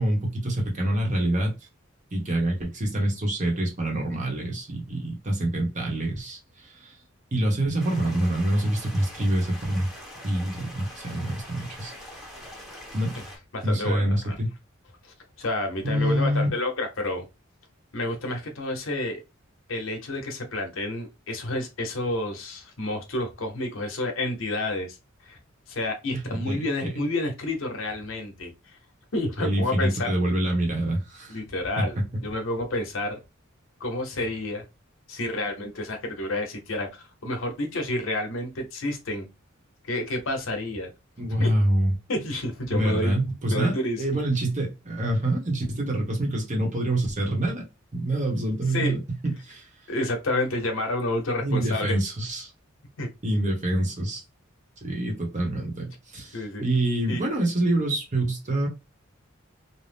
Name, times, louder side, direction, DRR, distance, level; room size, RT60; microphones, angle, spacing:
voice 1, 0.0-1.5 2.1-6.9 7.3-9.9 10.2-11.9 12.9-13.2 13.6-14.5 15.8-16.5 26.1-26.9 29.4-31.4 31.8-32.0 41.2-41.9 42.7-47.7 47.9-49.7 51.4-52.5 53.2-54.2 54.8-58.7, right 1 dB, 35° right, 0.9 m, -26 dB
Stream, 7.8-13.4, left 1 dB, ahead, 0.9 m, -43 dB
voice 2, 13.5-14.3 15.0-17.2 17.9-19.2 19.7-25.0 25.2-25.4 25.7-28.5 29.1-30.1 31.3-33.2 33.8-34.6 35.1-39.3 39.9-40.9 41.4-41.5 42.1-43.2 43.5-44.2 48.7-49.0 49.9-52.0 53.0-53.1 56.3-56.6 57.1-57.2, left 1 dB, 70° left, 0.8 m, -29 dB
2.6 x 2.0 x 3.3 m
head